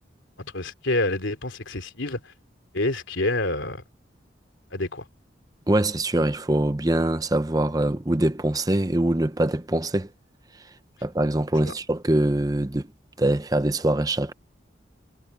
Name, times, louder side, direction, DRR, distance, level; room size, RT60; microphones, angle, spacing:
voice 1, 0.4-2.3 2.7-3.8 4.7-5.0 11.6-11.7, left 2 dB, 90° left, 3.2 m, -27 dB
voice 2, 5.7-10.1 11.0-12.9 13.2-14.3, right 1 dB, 20° right, 0.7 m, -23 dB
head